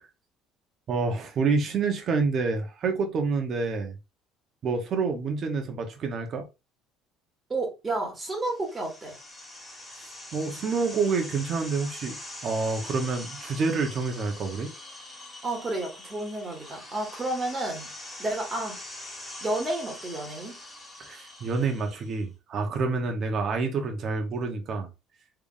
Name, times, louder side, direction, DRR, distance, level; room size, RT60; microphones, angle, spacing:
voice 1, 0.9-4.0 4.6-6.4 10.3-12.2 12.4-14.7 21.0-24.9, right 4 dB, 45° right, 1.0 m, -28 dB
voice 2, 7.5-9.1 15.4-17.9 18.2-18.8 19.4-20.6, right 2 dB, 20° right, 1.7 m, -31 dB
sound 1, 8.5-22.2, left 1 dB, 10° left, 1.5 m, -43 dB
3.5 x 3.4 x 2.5 m
cardioid pair, 120°, 0 cm